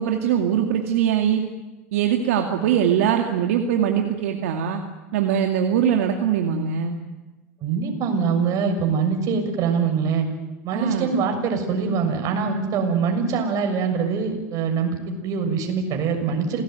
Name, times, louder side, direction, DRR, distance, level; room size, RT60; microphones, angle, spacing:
voice 1, 0.0-1.4 1.9-4.8 5.1-7.0 10.7-11.1, right 9 dB, 80° right, 3 dB, 2.3 m, -22 dB
voice 2, 7.6-10.3 10.6-16.6, right 5 dB, 50° right, 5 dB, 6.6 m, -23 dB
27.5 x 18.5 x 9.3 m, 1.2 s
hypercardioid pair, 100°, 7 cm